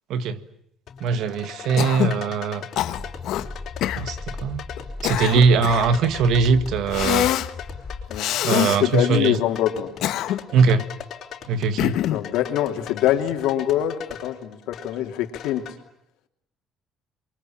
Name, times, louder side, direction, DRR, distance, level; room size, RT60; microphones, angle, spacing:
sound 1, 0.9-15.8, left 8 dB, 45° left, 4.2 m, -40 dB
voice 1, 1.0-2.6 4.0-4.6 5.0-7.3 8.4-9.3 10.5-10.8 11.5-11.9, right 5 dB, 60° right, 1.7 m, -21 dB
Cough, 1.8-2.2 2.8-3.5 3.8-4.0 4.8-5.9 6.9-7.5 8.2-8.8 9.8-10.6 11.8-12.3, left 13 dB, 60° left, 1.1 m, -24 dB
sound 2, 2.8-8.2, left 4 dB, 20° left, 2.1 m, -36 dB
voice 2, 8.1-9.9 12.0-15.7, left 12 dB, 75° left, 3.0 m, -24 dB
28.5 x 23.5 x 8.9 m
cardioid pair, 175°, 0 cm